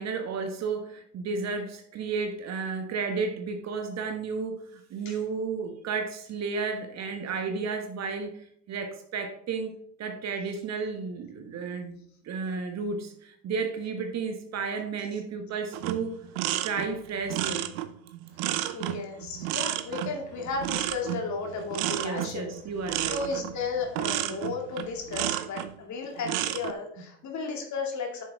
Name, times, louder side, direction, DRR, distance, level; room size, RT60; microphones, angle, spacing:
voice 1, 0.0-9.7 10.0-16.3 16.6-17.7 21.9-23.2, right 5 dB, 35° right, 6 dB, 1.3 m, -33 dB
sound 1, 15.7-25.7 26.2-26.7, right 13 dB, 60° right, 0.8 m, -31 dB
voice 2, 18.7-22.5 23.1-28.2, left 4 dB, 35° left, 2 dB, 2.4 m, -34 dB
sound 2, 19.8-24.9, equal, 15° right, 3.9 m, -55 dB
9.3 x 7.1 x 3.5 m, 0.66 s
hypercardioid pair, 80°, 48 cm